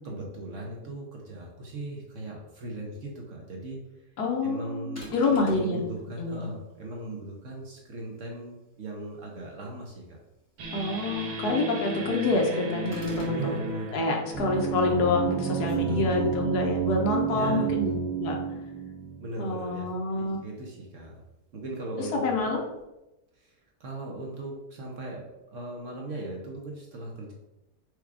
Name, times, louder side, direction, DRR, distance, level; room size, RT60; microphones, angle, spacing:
voice 1, 0.0-3.9 4.4-10.2 11.3-11.6 13.3-14.0 15.6-16.4 17.3-17.7 19.2-21.2 21.5-22.4 23.3-27.3, right 2 dB, 55° right, -1 dB, 1.0 m, -38 dB
voice 2, 4.2-5.8 6.2-6.4 10.7-13.5 13.9-18.3 19.4-20.4 22.1-22.6, left 3 dB, 70° left, 1 dB, 1.3 m, -27 dB
sound 1, 5.0-5.8 12.9-13.4, left 1 dB, 10° left, 0.8 m, -42 dB
sound 2, 10.6-19.9, right 6 dB, 80° right, 1.5 m, -32 dB
4.7 x 2.3 x 4.6 m, 0.96 s
omnidirectional pair, 1.8 m